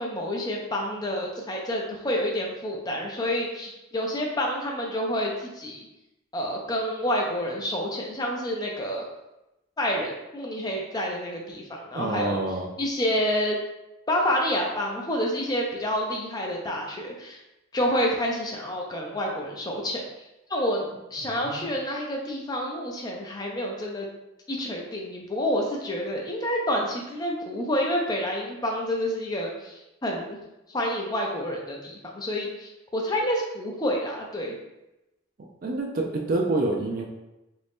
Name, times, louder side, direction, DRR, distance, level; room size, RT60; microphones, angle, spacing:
voice 1, 0.0-5.9 6.3-9.1 9.8-12.4 12.8-13.6 14.1-17.4 17.7-24.1 24.5-30.4 30.7-34.5, equal, 20° left, -1 dB, 0.5 m, -28 dB
voice 2, 11.9-12.7 21.2-21.7 35.6-37.1, right 2 dB, 45° right, 0 dB, 0.3 m, -27 dB
2.9 x 2.6 x 3.5 m, 0.95 s
head